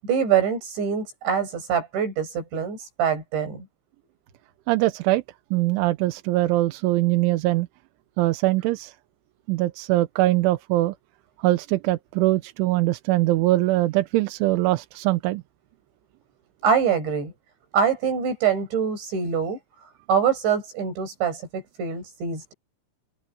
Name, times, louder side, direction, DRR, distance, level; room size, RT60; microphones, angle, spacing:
voice 1, 0.0-3.7 16.6-17.3 17.7-19.6 20.1-22.5, right 7 dB, 65° right, 9.5 m, -24 dB
voice 2, 4.7-5.2 5.5-7.7 8.2-8.9 9.5-10.9 11.4-15.4, right 17 dB, 80° right, 3.2 m, -22 dB
omnidirectional pair, 5.6 m